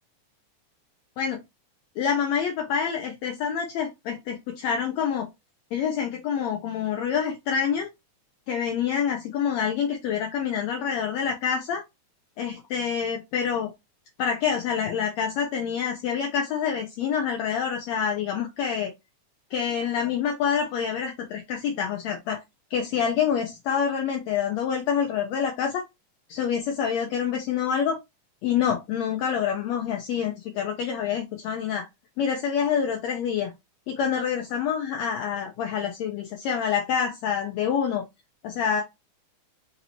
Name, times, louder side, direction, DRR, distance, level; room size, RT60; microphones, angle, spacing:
voice 1, 2.0-5.3 5.7-7.9 8.5-11.8 12.4-13.7 14.2-18.9 19.5-22.4 22.7-25.8 26.3-28.0 28.4-31.9 32.2-33.5 33.9-38.0 38.4-38.8, left 7 dB, 75° left, 1.6 m, -27 dB
5.2 x 2.8 x 2.7 m
omnidirectional pair, 3.7 m